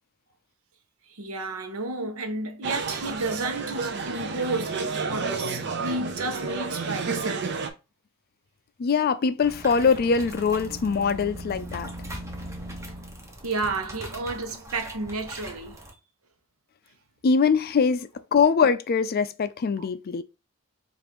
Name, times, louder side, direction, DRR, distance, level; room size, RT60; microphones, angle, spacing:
voice 1, 1.1-7.7 13.4-15.8, right 2 dB, 85° right, 0.8 m, -32 dB
sound 1, 2.6-7.7, right 4 dB, 55° right, 0.6 m, -30 dB
voice 2, 8.8-11.9 17.2-20.2, left 5 dB, 45° left, 0.4 m, -23 dB
sound 2, 9.4-15.9, right 1 dB, 15° right, 0.8 m, -39 dB
5.0 x 2.6 x 3.0 m
head